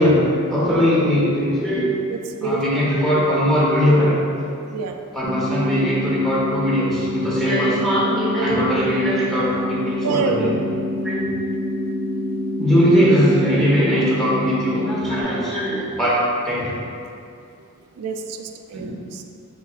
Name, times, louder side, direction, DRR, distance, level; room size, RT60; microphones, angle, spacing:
voice 1, 0.0-1.9 2.4-4.2 5.1-10.6 11.0-11.3 12.6-16.8 18.7-18.9, equal, ahead, -8 dB, 0.9 m, -20 dB
voice 2, 2.1-2.8 4.7-5.0 10.0-10.5 14.8-14.9 18.0-19.2, right 4 dB, 90° right, 5 dB, 0.3 m, -27 dB
sound 1, 5.2-15.2, left 1 dB, 15° right, 0.5 m, -26 dB
5.0 x 4.1 x 2.4 m, 2.4 s
head